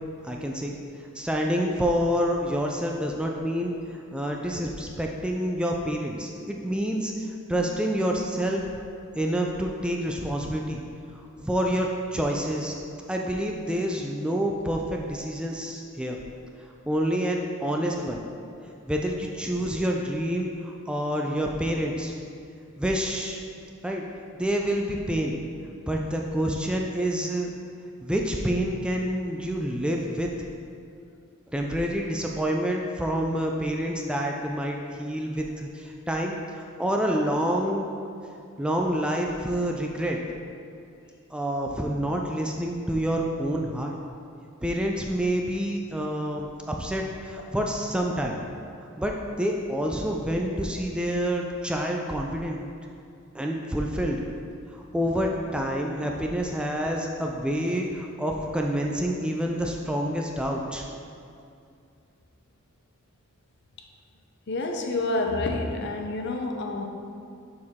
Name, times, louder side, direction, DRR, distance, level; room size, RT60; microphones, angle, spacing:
voice 1, 0.2-0.8 1.1-8.6 9.2-10.8 11.4-12.7 13.1-16.2 16.9-18.2 18.8-22.1 22.8-23.4 23.8-24.0 24.4-25.4 25.9-27.5 28.0-30.3 31.5-37.9 38.6-40.2 41.3-43.9 44.6-48.4 49.0-52.6 53.3-54.2 54.7-60.8, equal, 5° right, 0 dB, 0.3 m, -28 dB
voice 2, 64.5-66.9, left 2 dB, 55° left, 3 dB, 0.6 m, -28 dB
6.4 x 4.7 x 3.6 m, 2.4 s
head